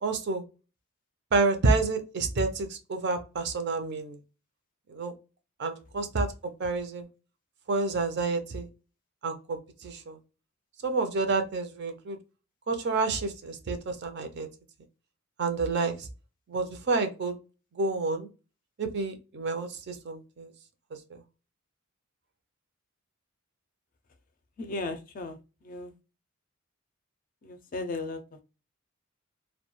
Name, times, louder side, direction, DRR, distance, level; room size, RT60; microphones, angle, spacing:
voice 1, 0.0-0.4 1.3-4.2 4.9-5.1 5.6-7.1 7.7-8.7 9.2-10.2 10.8-12.2 12.7-14.5 15.4-16.1 16.5-17.3 17.8-18.3 18.8-20.5 20.9-21.2, right 3 dB, 55° right, 0.5 m, -29 dB
voice 2, 24.6-25.9 27.4-28.4, left 2 dB, 40° left, 0.4 m, -36 dB
2.2 x 2.1 x 3.0 m
head